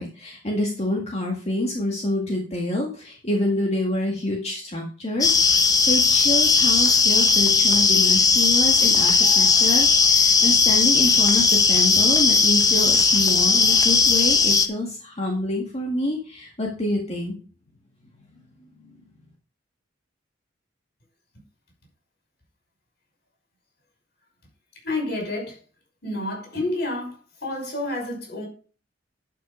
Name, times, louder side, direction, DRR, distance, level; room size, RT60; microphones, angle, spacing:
voice 1, 0.0-17.3 18.3-18.4 18.8-18.9, left 1 dB, 35° left, 1.9 m, -27 dB
sound 1, 5.2-14.7, left 4 dB, 20° left, 1.0 m, -18 dB
voice 2, 24.8-25.6 26.0-28.5, left 2 dB, 55° left, 5.9 m, -29 dB
11.5 x 6.0 x 5.1 m
head